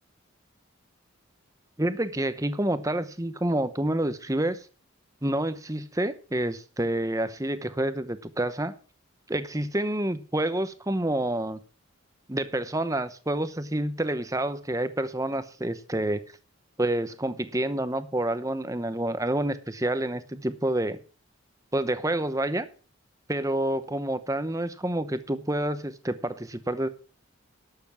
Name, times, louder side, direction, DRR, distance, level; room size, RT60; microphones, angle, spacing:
voice 1, 1.8-4.7 5.2-8.7 9.3-11.6 12.3-16.2 16.8-21.0 21.7-22.7 23.3-26.9, right 1 dB, 15° right, 0.9 m, -28 dB
12.0 x 7.8 x 5.9 m
head